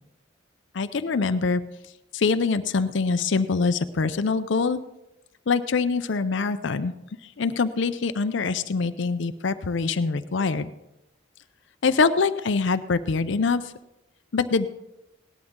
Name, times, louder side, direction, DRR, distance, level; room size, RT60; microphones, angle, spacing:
voice 1, 0.7-1.6 2.1-4.8 5.5-6.9 7.4-10.7 11.8-13.6 14.3-14.7, left 4 dB, 65° left, 11 dB, 0.5 m, -24 dB
17.5 x 12.0 x 3.7 m, 0.92 s
head